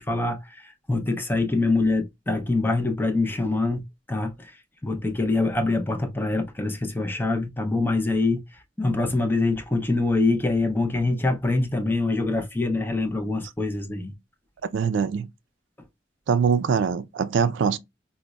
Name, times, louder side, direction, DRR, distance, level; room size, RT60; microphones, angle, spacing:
voice 1, 0.0-4.5 4.8-8.4 8.8-14.1, left 2 dB, 10° left, 0.5 m, -24 dB
voice 2, 14.7-15.3 16.3-17.8, right 6 dB, 85° right, 0.3 m, -23 dB
5.0 x 2.0 x 2.2 m
head